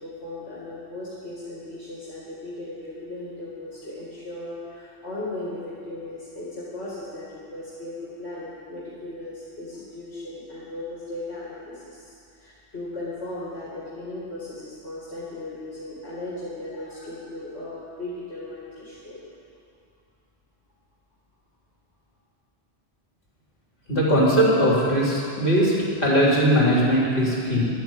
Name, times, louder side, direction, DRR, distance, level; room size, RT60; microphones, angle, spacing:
voice 1, 0.0-12.1 12.4-19.2, left 2 dB, 70° left, -8 dB, 2.8 m, -37 dB
voice 2, 23.9-25.7 26.0-27.6, equal, 55° left, -6 dB, 4.0 m, -20 dB
12.5 x 9.2 x 8.9 m, 2.4 s
omnidirectional pair, 1.1 m